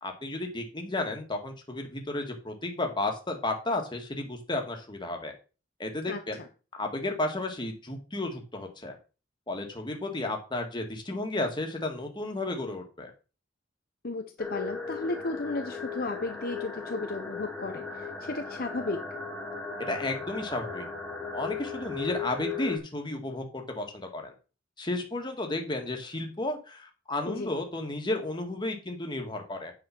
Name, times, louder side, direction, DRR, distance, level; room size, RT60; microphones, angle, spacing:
voice 1, 0.0-5.3 5.8-6.4 6.7-9.0 9.5-13.1 19.9-20.9 21.3-24.3 24.8-29.7, left 2 dB, 25° left, 3 dB, 1.8 m, -33 dB
voice 2, 6.1-6.5 14.0-19.0 27.3-27.5, left 2 dB, 50° left, 6 dB, 0.8 m, -34 dB
sound 1, 14.4-22.8, left 5 dB, 5° left, 1.4 m, -37 dB
8.8 x 4.9 x 5.9 m, 0.34 s
head